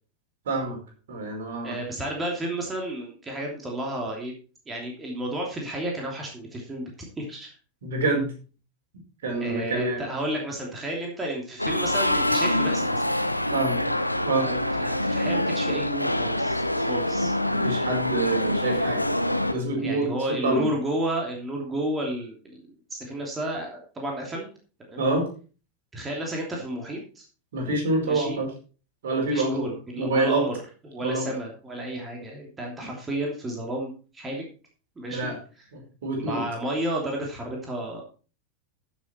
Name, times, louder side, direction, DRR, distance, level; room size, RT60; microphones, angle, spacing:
voice 1, 0.4-0.8 1.1-1.8 7.8-8.3 9.2-10.0 13.5-13.8 14.2-14.5 17.2-19.1 19.5-20.7 25.0-25.3 27.5-28.5 29.0-30.4 31.0-31.3 35.1-35.4 35.7-36.4, right 2 dB, 60° right, 2 dB, 5.0 m, -27 dB
voice 2, 1.6-4.3 4.7-7.5 9.4-13.0 14.4-17.3 19.8-24.5 24.8-25.0 25.9-27.2 28.0-28.4 29.3-30.6 30.8-34.4 35.0-35.3 36.2-38.0, right 1 dB, 15° right, 0 dB, 3.0 m, -32 dB
sound 1, 11.6-19.5, left 1 dB, 90° left, 0.9 m, -25 dB
14.0 x 7.2 x 4.4 m, 0.37 s
figure-of-eight pair, 90°, 0 cm